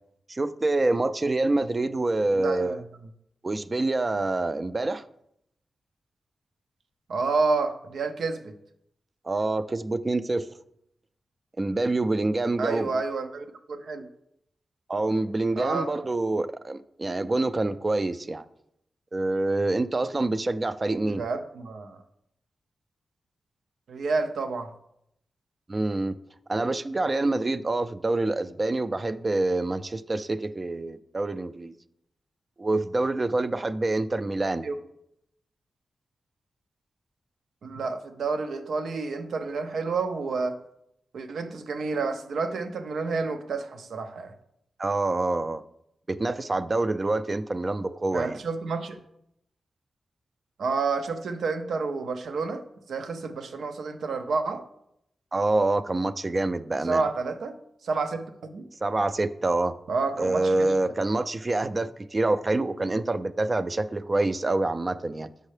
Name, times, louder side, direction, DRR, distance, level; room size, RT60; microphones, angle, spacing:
voice 1, 0.3-2.8 3.4-5.1 9.2-10.5 11.6-12.9 14.9-18.4 19.1-21.2 25.7-26.2 26.5-31.7 32.6-34.7 44.8-45.6 46.1-48.4 55.3-57.1 58.8-59.8 60.2-65.3, right 2 dB, 35° right, 13 dB, 0.3 m, -26 dB
voice 2, 2.3-2.8 7.1-8.5 12.6-14.1 15.6-15.9 21.0-22.0 23.9-24.7 34.6-34.7 37.6-40.6 41.1-44.3 48.1-49.0 50.6-52.6 52.9-54.6 56.9-57.6 57.8-58.7 59.9-60.7, right 4 dB, 85° right, 8 dB, 0.5 m, -29 dB
6.5 x 5.3 x 3.3 m, 0.77 s
cardioid pair, 70°, 0 cm